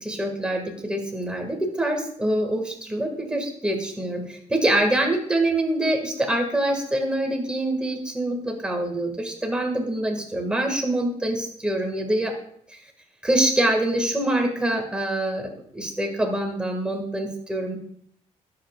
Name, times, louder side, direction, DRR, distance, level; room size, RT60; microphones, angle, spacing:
voice 1, 0.0-12.3 12.7-12.8 13.2-17.8, right 1 dB, 5° right, 2 dB, 1.9 m, -25 dB
21.5 x 7.8 x 2.4 m, 0.66 s
cardioid pair, 175°, 13 cm